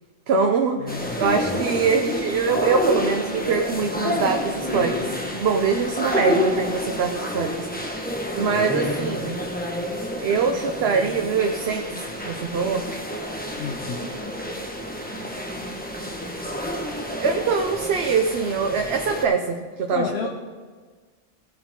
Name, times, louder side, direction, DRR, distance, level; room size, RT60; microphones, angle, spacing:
voice 1, 0.3-8.0 8.3-9.5 10.2-12.8 17.1-20.3, right 5 dB, 75° right, 4 dB, 1.0 m, -24 dB
voice 2, 0.8-1.2 13.5-14.0 19.9-20.3, left 6 dB, 75° left, 1 dB, 1.1 m, -30 dB
sound 1, 0.9-19.3, left 1 dB, 10° left, 1.2 m, -29 dB
17.5 x 7.1 x 3.7 m, 1.5 s
omnidirectional pair, 1.1 m